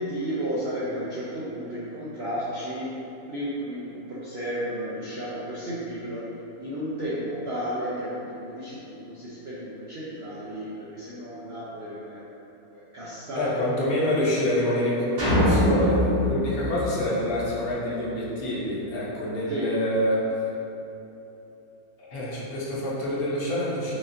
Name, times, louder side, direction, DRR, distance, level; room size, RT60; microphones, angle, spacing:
voice 1, 0.0-3.0 3.3-6.3 6.6-12.3 12.7-13.5 14.0-14.2 16.5-16.7 19.5-19.8, equal, 70° right, -9 dB, 0.6 m, -33 dB
voice 2, 13.3-20.2 22.0-24.0, left 1 dB, 75° left, -7 dB, 1.3 m, -27 dB
sound 1, 15.2-17.6, equal, 85° right, 2.2 m, -23 dB
4.9 x 2.4 x 2.5 m, 3.0 s
omnidirectional pair, 1.6 m